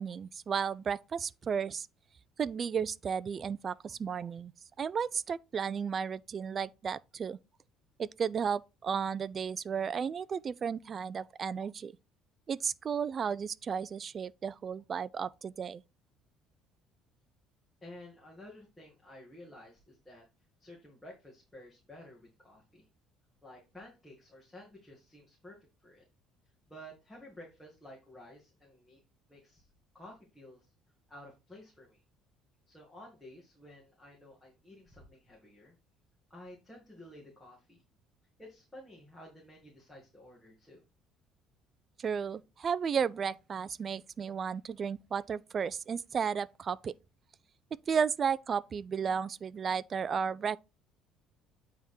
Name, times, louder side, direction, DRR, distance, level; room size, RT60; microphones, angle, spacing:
voice 1, 0.0-1.9 2.4-4.5 4.8-7.4 8.0-11.9 12.5-15.8 42.0-46.9 47.9-50.6, right 7 dB, 30° right, 0.3 m, -33 dB
voice 2, 17.8-20.3 20.6-22.9 23.4-26.1 26.7-29.0 29.3-29.7 29.9-30.7 31.1-32.0 32.7-35.7 36.3-37.8 38.4-40.8, left 1 dB, 10° left, 2.0 m, -52 dB
8.8 x 3.6 x 4.3 m
cardioid pair, 140°, 0 cm